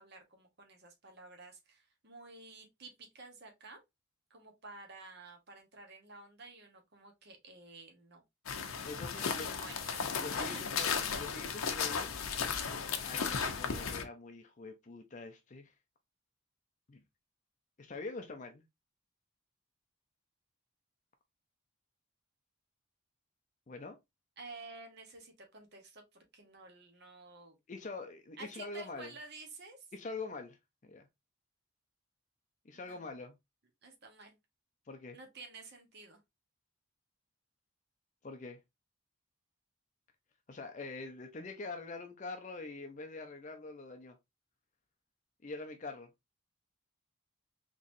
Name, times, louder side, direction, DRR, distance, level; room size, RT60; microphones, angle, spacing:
voice 1, 0.0-3.8 4.3-8.2 9.1-10.1 10.7-10.8 24.4-27.6 28.4-29.9 32.7-33.0 33.8-34.4 35.1-36.2, right 3 dB, 50° right, 1.0 m, -52 dB
sound 1, 8.5-14.0, left 6 dB, 85° left, 0.7 m, -35 dB
voice 2, 8.8-9.5 10.2-10.9 11.2-12.1 13.0-15.7 16.9-17.0 17.8-18.6 23.7-24.0 27.7-29.1 29.9-31.0 32.6-33.4 34.9-35.2 38.2-38.6 40.5-44.2 45.4-46.1, left 3 dB, 35° left, 0.5 m, -44 dB
3.9 x 3.0 x 2.5 m
head